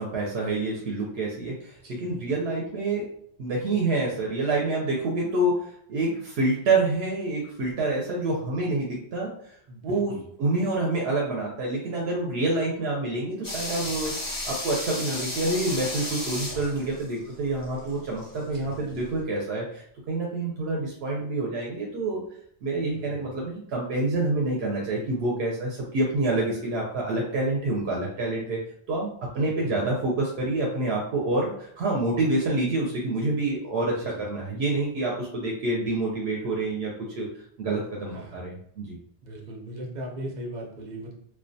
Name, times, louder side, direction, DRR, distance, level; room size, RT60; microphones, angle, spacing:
voice 1, 0.0-3.1 3.4-9.5 9.8-14.1 14.5-22.2 22.6-28.6 28.9-29.1 29.3-37.3 37.6-39.0, right 2 dB, 90° right, -2 dB, 0.8 m, -27 dB
voice 2, 1.8-2.2 9.7-10.2 18.5-19.1 22.9-23.3 29.4-29.9 34.0-34.2 38.1-38.4 39.2-41.1, right 1 dB, 50° right, -1 dB, 0.7 m, -39 dB
sound 1, 13.4-18.4 18.7-18.8, left 1 dB, 30° left, 0.4 m, -34 dB
2.2 x 2.2 x 2.6 m, 0.67 s
omnidirectional pair, 1.0 m